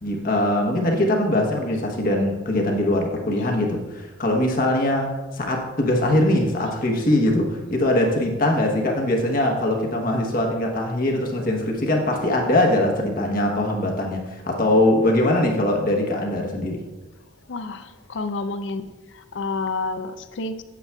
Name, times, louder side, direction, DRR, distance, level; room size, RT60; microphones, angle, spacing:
voice 1, 0.0-16.8, left 1 dB, 40° left, 1 dB, 1.0 m, -22 dB
voice 2, 17.5-18.9 19.1-20.6, left 3 dB, 60° left, 10 dB, 0.5 m, -29 dB
8.3 x 8.3 x 2.3 m, 1.2 s
head